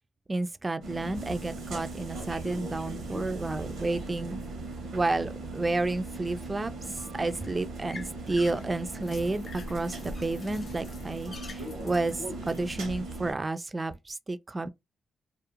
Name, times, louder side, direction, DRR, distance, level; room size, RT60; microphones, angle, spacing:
voice 1, 0.3-4.4 4.9-14.7, right 2 dB, 30° right, 0.3 m, -31 dB
sound 1, 0.8-13.3, right 2 dB, 80° right, 0.7 m, -38 dB
sound 2, 7.0-12.8, left 4 dB, 50° left, 0.5 m, -49 dB
2.4 x 2.0 x 2.8 m
cardioid pair, 60°, 0 cm